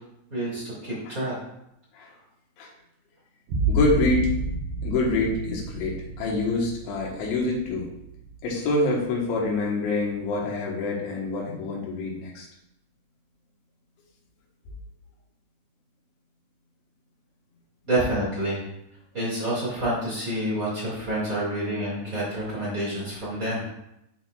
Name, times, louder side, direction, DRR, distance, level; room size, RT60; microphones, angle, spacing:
voice 1, 0.3-1.3 17.9-18.6 19.1-23.7, right 1 dB, 40° right, -8 dB, 1.1 m, -28 dB
sound 1, 3.5-8.9 9.4-10.0, right 1 dB, 80° right, 2.0 m, -30 dB
voice 2, 3.7-4.3 4.8-7.9 8.4-12.5, left 2 dB, 85° left, -2 dB, 3.7 m, -26 dB
11.5 x 4.1 x 2.4 m, 0.81 s
omnidirectional pair, 5.1 m